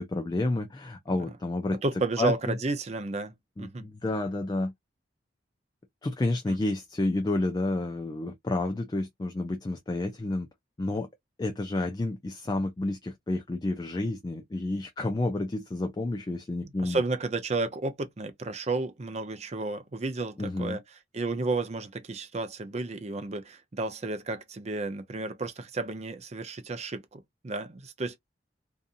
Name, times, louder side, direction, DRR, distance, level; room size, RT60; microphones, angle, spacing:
voice 1, 0.0-1.8 2.2-2.6 3.6-4.7 6.0-10.5 10.8-11.1 11.4-17.0 20.4-20.8, left 2 dB, 20° left, 0.3 m, -30 dB
voice 2, 1.8-3.8 6.5-6.6 16.6-20.8 21.1-28.2, right 3 dB, 35° right, 0.5 m, -32 dB
2.7 x 2.4 x 2.5 m
head